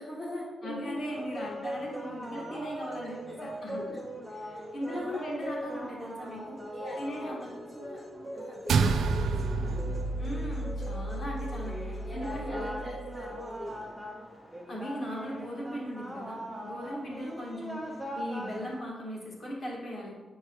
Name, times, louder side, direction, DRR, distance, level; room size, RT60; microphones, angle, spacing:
voice 1, 0.0-1.0 1.6-1.7 2.3-2.4 3.7-4.0 4.4-5.8 6.6-8.0 8.3-9.8 12.1-13.8 17.1-17.2, left 1 dB, 25° left, -9 dB, 1.2 m, -41 dB
voice 2, 0.6-3.8 4.3-6.6 7.0-7.6 10.2-12.7 14.7-20.1, equal, 45° left, -3 dB, 1.7 m, -38 dB
sound 1, 0.9-18.8, equal, ahead, 0.7 m, -41 dB
sound 2, 8.7-13.3, right 4 dB, 90° right, 0.3 m, -30 dB
8.2 x 4.6 x 3.0 m, 1.3 s
wide cardioid pair, 170°, 0 cm